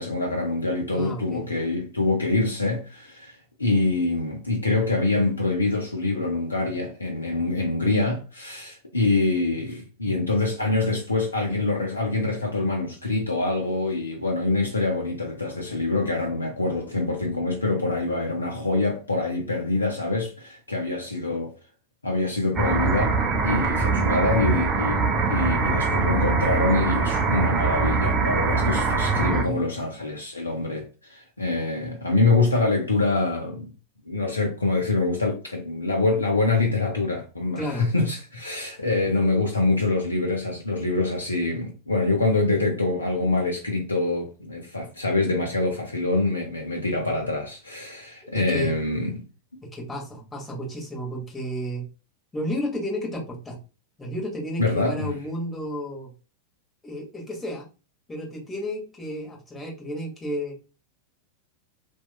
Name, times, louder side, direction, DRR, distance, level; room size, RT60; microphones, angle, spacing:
voice 1, 0.0-21.5 22.0-23.2 23.4-33.7 34.1-49.2 54.6-55.2, left 2 dB, 80° left, 0.5 m, -25 dB
voice 2, 0.9-1.5 29.3-29.7 37.6-37.9 48.3-48.8 49.6-51.9 52.3-53.6 54.0-56.1 56.8-57.7 58.1-60.5, equal, 15° left, 1.1 m, -32 dB
sound 1, 22.6-29.5, right 4 dB, 25° right, 0.5 m, -23 dB
2.8 x 2.2 x 2.2 m
figure-of-eight pair, 90°, 0 cm